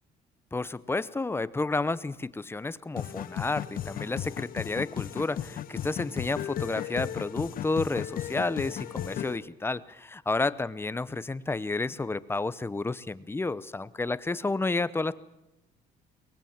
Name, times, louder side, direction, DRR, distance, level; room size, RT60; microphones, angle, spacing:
voice 1, 0.5-15.1, left 3 dB, 15° left, 17 dB, 0.8 m, -31 dB
sound 1, 3.0-9.4, left 10 dB, 60° left, 1.1 m, -35 dB
23.0 x 20.0 x 7.4 m, 0.92 s
cardioid pair, 110°, 17 cm